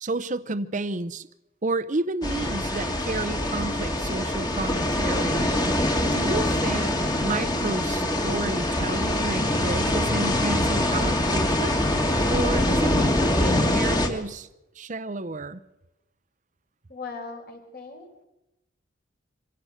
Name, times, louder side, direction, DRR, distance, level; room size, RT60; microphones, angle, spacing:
voice 1, 0.0-1.3 1.6-5.5 6.1-6.9 7.2-11.8 12.3-13.1 13.4-14.5 14.8-15.6, right 2 dB, 40° right, 0.7 m, -31 dB
sound 1, 2.2-14.1, left 1 dB, 20° left, 2.1 m, -24 dB
voice 2, 16.9-18.3, left 4 dB, 50° left, 4.9 m, -39 dB
25.5 x 16.5 x 6.5 m
head